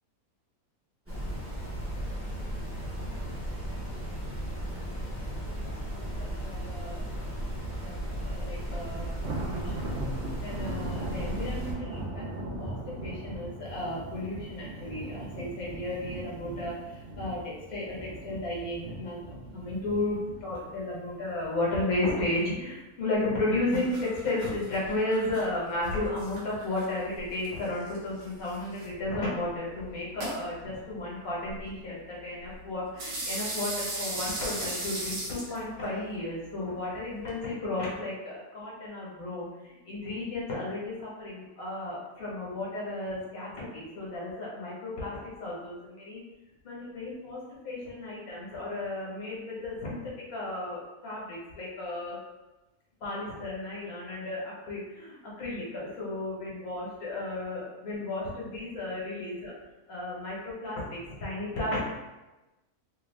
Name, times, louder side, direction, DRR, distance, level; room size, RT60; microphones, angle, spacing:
sound 1, 1.1-11.7, equal, 10° right, 0.6 m, -35 dB
voice 1, 4.7-5.1 5.4-7.0 7.8-7.9 8.2-9.1 9.4-10.0 10.4-12.2 12.6-19.2 19.5-46.2 46.6-47.4 47.6-52.2 53.0-59.5 59.9-61.8, left 2 dB, 70° left, -5 dB, 1.4 m, -34 dB
Thunder, 8.6-21.9 22.3-22.6 23.0-23.1 24.0-24.6, right 2 dB, 65° right, 0.6 m, -39 dB
sound 2, 23.1-37.4, right 1 dB, 90° right, 1.4 m, -40 dB
3.2 x 2.3 x 3.2 m, 1.1 s
omnidirectional pair, 1.6 m